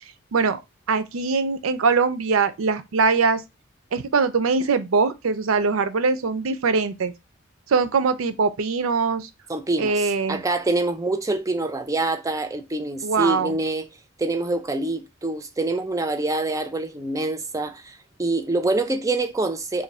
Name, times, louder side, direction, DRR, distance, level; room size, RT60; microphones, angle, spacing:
voice 1, 0.9-3.4 3.9-7.1 7.7-9.3 9.8-10.4 13.0-13.6, right 4 dB, 80° right, 0.5 m, -22 dB
voice 2, 9.5-13.9 14.2-19.8, right 2 dB, 15° right, 0.4 m, -25 dB
2.6 x 2.5 x 4.0 m
head